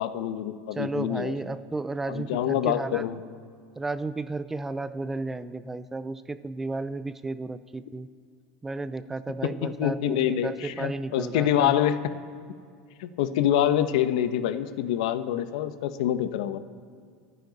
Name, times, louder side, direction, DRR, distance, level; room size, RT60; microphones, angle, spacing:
voice 1, 0.0-1.3 2.1-3.2 9.4-12.1 13.0-16.6, left 11 dB, 75° left, 11 dB, 0.9 m, -26 dB
voice 2, 0.7-3.1 3.8-8.1 8.6-11.7, right 3 dB, 10° right, 14 dB, 0.4 m, -33 dB
27.0 x 9.7 x 4.1 m, 2.2 s
supercardioid pair, 160°, 4 cm